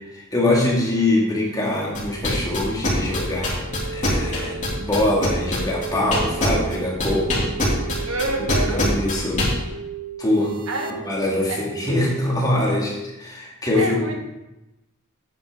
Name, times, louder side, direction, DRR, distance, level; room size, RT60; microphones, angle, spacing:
voice 1, 0.1-3.6 3.9-7.5 8.8-9.5 10.2-10.5 11.0-14.2, left 1 dB, 20° left, -3 dB, 2.5 m, -23 dB
sound 1, 1.9-9.5, left 2 dB, 35° left, 3.6 m, -23 dB
sound 2, 3.1-12.3, right 6 dB, 45° right, 0.9 m, -36 dB
voice 2, 4.4-4.9 8.1-8.9 10.7-10.9 11.5-11.7 13.7-14.2, right 2 dB, 70° right, 2 dB, 1.6 m, -28 dB
10.0 x 9.2 x 4.0 m, 0.99 s
head